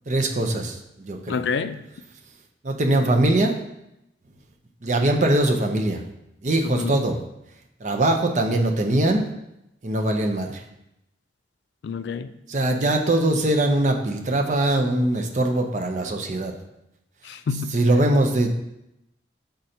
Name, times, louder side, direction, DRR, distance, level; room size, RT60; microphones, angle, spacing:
voice 1, 0.1-0.8 1.1-1.4 2.6-3.6 4.8-6.0 6.4-7.2 7.8-9.3 9.8-10.6 12.5-16.5 17.7-18.5, right 1 dB, 45° right, 3 dB, 0.6 m, -21 dB
voice 2, 1.3-1.9 6.6-7.1 11.8-12.3 17.2-17.8, left 5 dB, 80° left, 11 dB, 0.4 m, -28 dB
6.5 x 3.9 x 4.3 m, 0.86 s
head